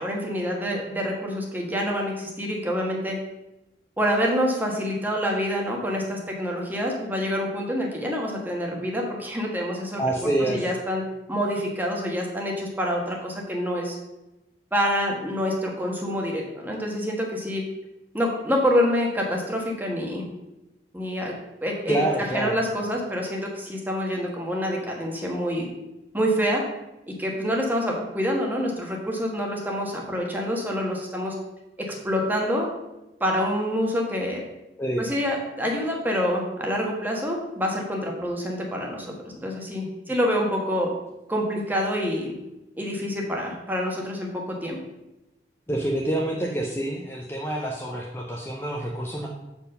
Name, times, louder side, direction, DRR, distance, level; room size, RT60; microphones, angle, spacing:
voice 1, 0.0-3.2 4.0-10.0 10.4-11.0 11.3-14.0 14.7-17.6 18.1-20.2 20.9-21.3 21.6-22.0 22.3-25.7 26.1-26.6 27.1-31.3 31.9-32.7 33.2-34.4 35.0-39.1 39.3-40.9 41.3-42.3 42.8-44.3 44.6-44.8, equal, 10° right, -1 dB, 1.3 m, -26 dB
voice 2, 10.0-10.6 21.9-22.6 34.8-35.0 45.7-49.3, right 1 dB, 15° left, -2 dB, 0.6 m, -27 dB
7.3 x 4.6 x 5.3 m, 0.97 s
head